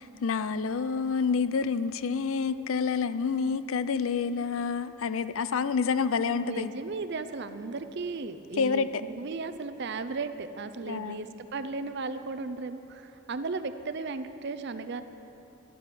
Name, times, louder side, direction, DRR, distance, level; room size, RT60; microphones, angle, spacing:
voice 1, 0.0-6.7 8.6-9.0 10.9-11.2, left 5 dB, 65° left, 13 dB, 0.4 m, -28 dB
voice 2, 6.4-15.0, right 3 dB, 50° right, 11 dB, 0.5 m, -35 dB
13.0 x 11.5 x 6.0 m, 3.0 s
head